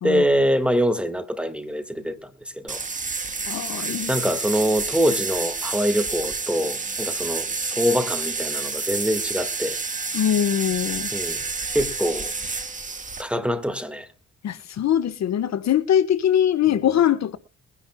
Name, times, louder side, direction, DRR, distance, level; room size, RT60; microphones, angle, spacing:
voice 1, 0.0-2.3 2.6-2.8 4.1-9.8 11.1-11.4 11.7-12.3 13.2-14.1, equal, 5° right, 1.7 m, -24 dB
sound 1, 2.7-13.2, right 4 dB, 25° right, 1.9 m, -29 dB
voice 2, 3.5-4.1 10.1-11.1 14.4-17.4, left 10 dB, 60° left, 1.2 m, -22 dB
22.0 x 10.5 x 2.2 m
cardioid pair, 90°, 30 cm